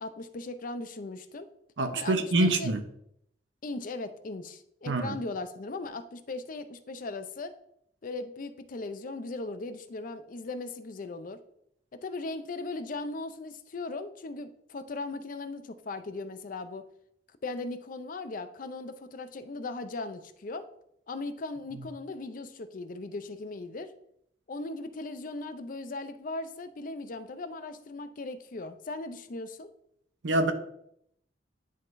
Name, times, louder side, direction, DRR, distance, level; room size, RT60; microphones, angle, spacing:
voice 1, 0.0-1.5 2.0-2.7 3.6-7.5 8.0-11.4 11.9-16.8 17.4-20.7 21.1-23.9 24.5-29.7, left 3 dB, 50° left, 0.5 m, -38 dB
voice 2, 1.8-2.8 4.9-5.2 30.2-30.5, right 2 dB, 90° right, 0.7 m, -25 dB
10.5 x 3.7 x 2.6 m
head